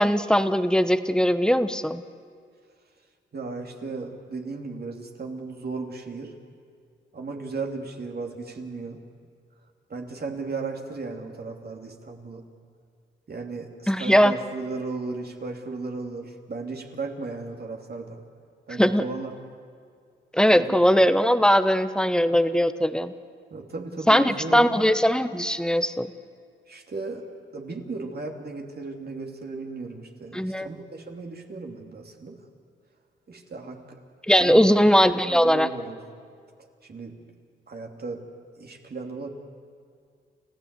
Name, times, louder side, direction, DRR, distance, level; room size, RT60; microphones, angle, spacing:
voice 1, 0.0-2.0 13.9-14.3 18.8-19.0 20.3-23.1 24.1-26.1 30.3-30.7 34.3-35.7, equal, 5° left, 11 dB, 1.0 m, -20 dB
voice 2, 3.3-6.3 7.1-9.0 9.9-12.4 13.3-18.2 18.7-19.3 20.5-20.8 23.5-24.8 26.7-27.3 27.5-32.4 33.3-34.0 34.4-34.7 35.1-36.0 36.8-37.2 37.7-38.3 38.6-39.3, right 3 dB, 50° right, 2 dB, 2.8 m, -35 dB
30.0 x 15.5 x 8.2 m, 2.2 s
cardioid pair, 70°, 20 cm